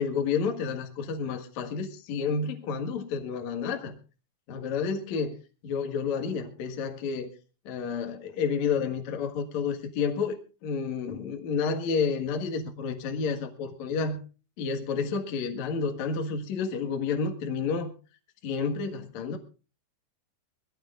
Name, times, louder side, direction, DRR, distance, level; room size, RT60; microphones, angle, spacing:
voice 1, 0.0-3.9 4.5-5.3 5.6-7.3 7.7-10.4 10.6-14.2 14.6-17.9 18.4-19.4, left 5 dB, 55° left, 4 dB, 2.1 m, -30 dB
22.0 x 17.0 x 2.5 m, 0.34 s
omnidirectional pair, 5.6 m